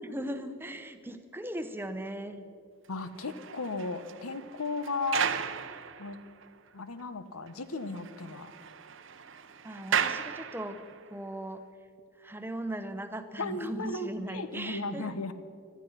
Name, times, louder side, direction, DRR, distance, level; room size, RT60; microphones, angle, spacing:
voice 1, 0.0-2.5 9.6-11.6 12.2-15.2, right 1 dB, 10° right, 9 dB, 0.8 m, -38 dB
voice 2, 2.9-5.3 6.0-6.2 6.7-8.5 13.4-15.3, left 3 dB, 90° left, 11 dB, 1.0 m, -35 dB
sound 1, 3.0-6.5 7.0-7.1 7.5-7.6 7.8-11.1, right 7 dB, 60° right, 0.7 m, -35 dB
19.0 x 12.5 x 5.8 m, 2.3 s
head